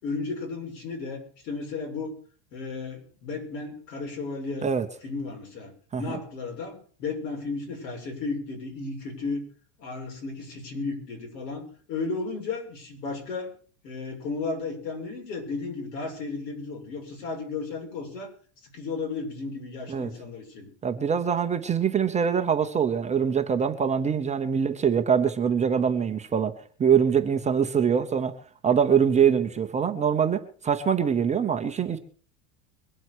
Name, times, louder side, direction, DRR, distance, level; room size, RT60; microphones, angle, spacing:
voice 1, 0.0-2.1 2.5-4.7 5.0-5.7 6.0-9.4 9.8-13.5 13.8-18.3 18.6-20.7, left 4 dB, 85° left, 2 dB, 6.8 m, -34 dB
voice 2, 20.8-28.4 28.6-32.0, right 7 dB, 15° right, 6 dB, 0.7 m, -24 dB
22.5 x 7.7 x 6.2 m, 0.43 s
supercardioid pair, 160°, 48 cm